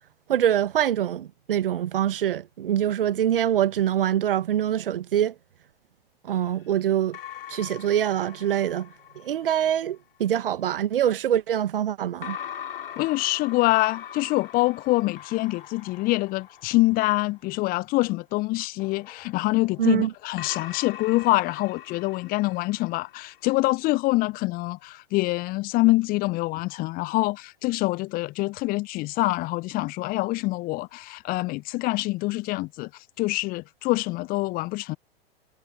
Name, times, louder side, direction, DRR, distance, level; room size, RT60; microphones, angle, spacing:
voice 1, 0.3-5.3 6.2-7.2 7.5-8.9 9.1-12.4 19.8-20.1, right 10 dB, 60° right, 1.6 m, -24 dB
sound 1, 6.3-9.7 12.2-17.7 18.8-23.4, left 10 dB, 60° left, 4.2 m, -42 dB
voice 2, 13.0-32.9 33.2-35.0, left 21 dB, 30° left, 1.0 m, -25 dB
figure-of-eight pair, 100°, 31 cm